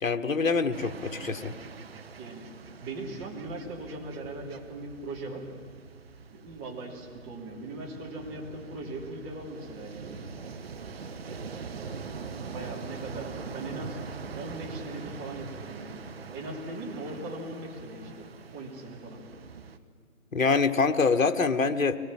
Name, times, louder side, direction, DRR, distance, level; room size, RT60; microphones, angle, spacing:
voice 1, 0.0-1.5 20.3-22.0, left 4 dB, 65° left, 7 dB, 1.5 m, -25 dB
sound 1, 0.7-19.8, right 5 dB, 45° right, 1.3 m, -43 dB
voice 2, 2.8-5.4 6.3-10.1 12.5-14.0 14.3-15.9 16.3-18.2 18.5-19.2, right 2 dB, 20° right, -2 dB, 3.1 m, -39 dB
24.0 x 19.5 x 8.8 m, 2.3 s
figure-of-eight pair, 145°, 42 cm